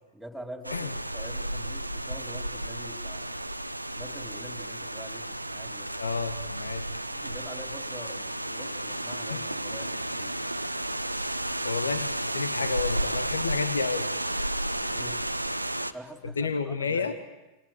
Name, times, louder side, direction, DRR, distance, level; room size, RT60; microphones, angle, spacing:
voice 1, 0.1-3.4 3.9-5.9 7.1-10.4 14.9-15.3 15.9-17.2, equal, 5° right, 5 dB, 3.3 m, -45 dB
sound 1, 0.6-15.9, right 1 dB, 90° right, 1.0 m, -32 dB
voice 2, 6.0-6.9 9.3-9.4 11.6-14.1 16.4-17.1, left 4 dB, 70° left, 11 dB, 1.5 m, -30 dB
28.5 x 28.0 x 7.5 m, 1.0 s
figure-of-eight pair, 90°, 0 cm